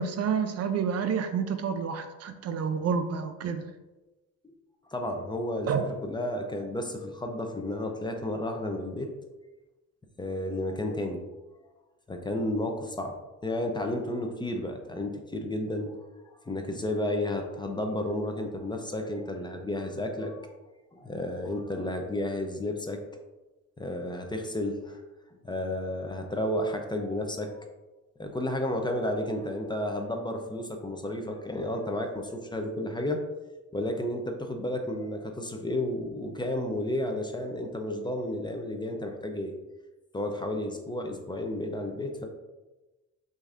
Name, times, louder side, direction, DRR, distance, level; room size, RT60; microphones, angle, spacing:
voice 1, 0.0-3.6 5.7-5.8, right 6 dB, 55° right, 8 dB, 0.5 m, -29 dB
voice 2, 4.9-9.1 10.2-11.2 11.6-11.7 12.1-13.2 13.4-16.0 16.4-20.5 20.9-23.0 23.8-25.0 25.4-27.7 28.2-33.2 33.7-39.5 40.1-42.3, left 1 dB, 15° left, 4 dB, 0.5 m, -32 dB
6.4 x 2.7 x 2.4 m, 1.1 s
cardioid pair, 90°, 30 cm